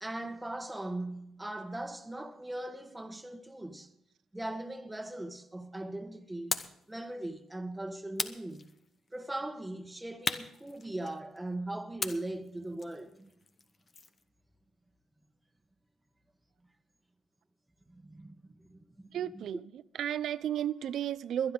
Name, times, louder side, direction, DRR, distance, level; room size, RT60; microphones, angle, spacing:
voice 1, 0.0-3.9 4.3-8.6 9.1-13.3 17.9-19.5, right 1 dB, 10° right, 1.3 m, -40 dB
sound 1, 6.5-6.8 8.2-9.1 10.2-11.4 12.0-14.2, left 4 dB, 40° left, 0.9 m, -38 dB
voice 2, 19.1-21.5, right 10 dB, 70° right, 0.5 m, -33 dB
22.5 x 10.5 x 3.8 m
cardioid pair, 90°, 0 cm